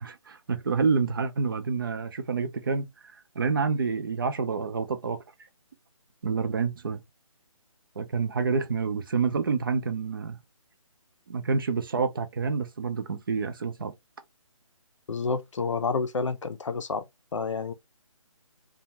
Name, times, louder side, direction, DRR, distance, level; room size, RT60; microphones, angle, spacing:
voice 1, 0.0-2.9 3.4-5.2 6.2-7.0 8.0-10.4 11.3-13.9, right 5 dB, 40° right, 0.5 m, -28 dB
voice 2, 15.1-17.0 17.3-17.7, left 4 dB, 60° left, 0.5 m, -29 dB
2.6 x 2.3 x 2.9 m
hypercardioid pair, 165°, 18 cm